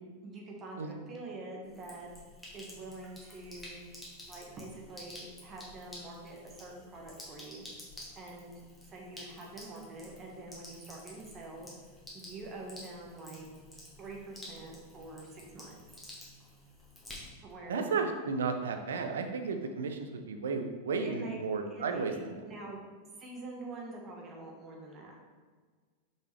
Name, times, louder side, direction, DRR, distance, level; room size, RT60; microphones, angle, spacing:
voice 1, 0.2-2.1 2.5-3.8 4.3-7.7 8.1-8.6 8.9-11.7 12.1-13.5 14.0-15.7 17.4-18.0 21.0-22.9 23.2-25.3, right 2 dB, 25° right, -1 dB, 1.4 m, -45 dB
Sink (filling or washing), 1.6-17.6, left 1 dB, 10° left, 1.8 m, -51 dB
voice 2, 17.7-22.4, right 4 dB, 65° right, 6 dB, 0.7 m, -33 dB
6.1 x 5.6 x 3.3 m, 1.5 s
figure-of-eight pair, 90°, 0 cm